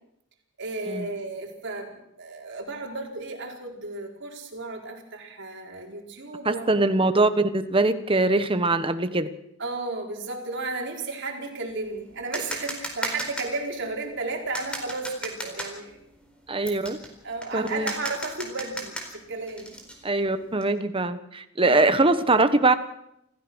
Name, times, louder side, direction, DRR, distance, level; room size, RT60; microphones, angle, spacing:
voice 1, 0.6-6.8 9.6-16.0 16.5-16.8 17.2-19.8 21.6-21.9, right 3 dB, 55° right, 1 dB, 4.6 m, -34 dB
voice 2, 6.4-9.3 16.5-17.0 17.5-17.9 20.0-22.7, right 2 dB, 25° right, 10 dB, 1.3 m, -22 dB
sound 1, 11.7-20.6, right 1 dB, 5° left, 4.3 m, -36 dB
28.5 x 15.0 x 6.3 m, 0.79 s
head